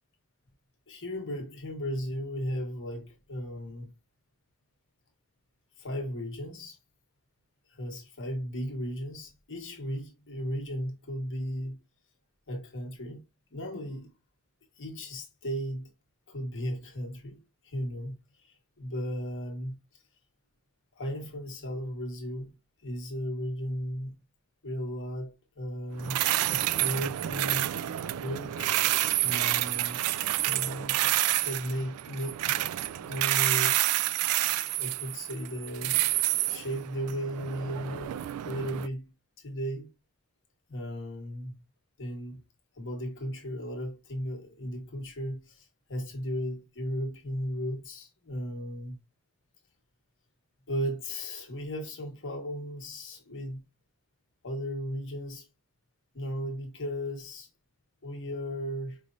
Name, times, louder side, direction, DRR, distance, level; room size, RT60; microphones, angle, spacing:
voice 1, 0.9-3.9 5.8-6.8 7.7-11.8 12.5-13.2 13.5-14.1 14.8-15.9 16.3-19.8 20.9-22.5 22.8-24.1 24.6-26.2 26.5-27.7 28.2-28.8 29.2-30.0 30.4-32.6 33.1-33.8 34.7-39.1 39.4-39.9 40.7-41.6 42.0-42.4 42.7-49.0 50.7-53.6 54.4-55.5 56.1-57.5 58.0-59.0, equal, 60° left, 1.4 m, -36 dB
sound 1, 26.0-38.9, right 15 dB, 70° right, 0.3 m, -29 dB
5.0 x 3.2 x 2.5 m
head